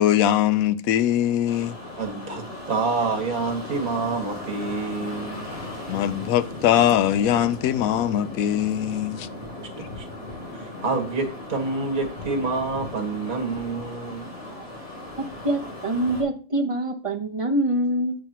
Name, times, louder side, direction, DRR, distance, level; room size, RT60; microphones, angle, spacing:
voice 1, 0.0-1.8 5.9-9.3, left 11 dB, 80° left, 1.0 m, -21 dB
sound 1, 1.5-16.2, left 1 dB, 50° left, 3.9 m, -37 dB
voice 2, 2.0-5.4 9.6-10.1 10.5-14.3, right 3 dB, 75° right, 2.1 m, -28 dB
voice 3, 15.4-18.2, right 1 dB, 25° right, 1.0 m, -25 dB
9.5 x 7.7 x 3.0 m
omnidirectional pair, 1.5 m